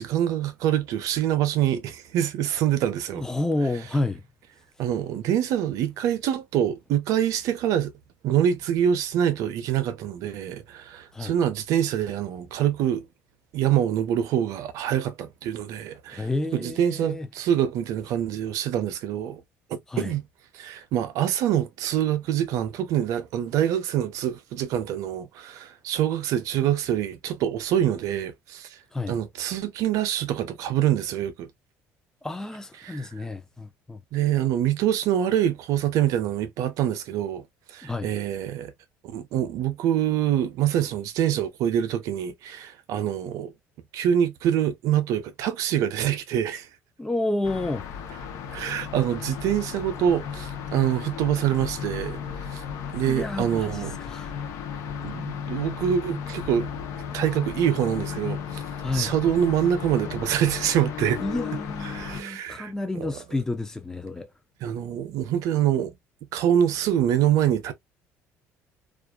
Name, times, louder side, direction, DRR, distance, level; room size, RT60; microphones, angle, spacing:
voice 1, 0.0-3.2 4.8-7.9 8.2-13.0 13.5-16.3 16.5-19.4 19.7-20.2 20.5-28.7 29.1-31.5 32.8-33.1 34.1-37.4 37.7-38.7 39.0-43.5 43.9-46.7 48.5-52.2 52.5-52.6 52.9-53.9 55.0-56.7 57.1-58.6 58.9-61.2 61.9-62.7 63.0-63.1 64.6-65.9 66.3-67.7, right 10 dB, 75° right, 0.6 m, -25 dB
voice 2, 3.1-4.2 11.1-11.4 16.1-17.3 19.9-20.2 28.9-29.2 32.2-34.0 37.8-38.1 47.0-48.0 52.9-54.3 58.8-59.1 61.2-64.3, left 2 dB, 10° left, 0.6 m, -30 dB
sound 1, 47.4-62.2, left 7 dB, 75° left, 0.7 m, -35 dB
2.5 x 2.4 x 2.3 m
supercardioid pair, 85°, 6 cm